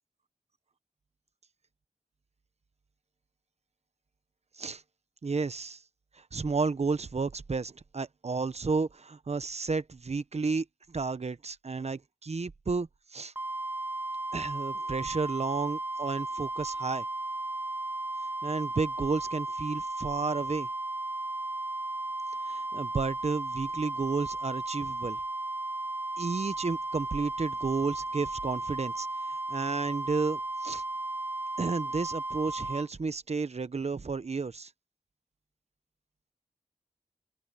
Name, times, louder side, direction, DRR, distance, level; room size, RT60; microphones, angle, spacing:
voice 1, 5.2-5.8 6.1-13.3 14.3-17.0 18.4-20.7 22.4-25.2 26.2-30.8 31.6-34.7, right 4 dB, 55° right, 1.0 m, -32 dB
sound 1, 13.4-32.9, right 2 dB, 15° right, 0.5 m, -35 dB
open air
wide cardioid pair, 70°, 13 cm